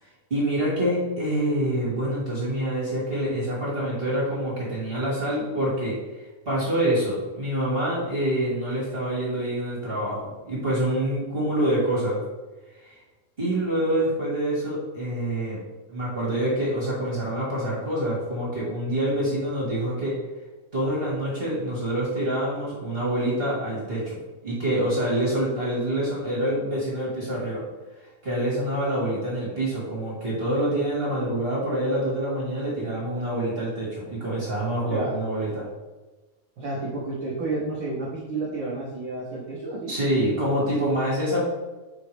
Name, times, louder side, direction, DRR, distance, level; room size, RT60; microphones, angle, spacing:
voice 1, 0.3-12.2 12.8-13.0 13.4-15.6 15.9-20.1 20.7-24.2 24.4-27.6 28.2-35.7 39.9-41.4, right 1 dB, 30° right, -7 dB, 1.2 m, -26 dB
voice 2, 36.6-39.9 40.8-40.9, right 2 dB, 90° right, -4 dB, 1.0 m, -31 dB
6.8 x 4.9 x 3.3 m, 1.2 s
omnidirectional pair, 3.6 m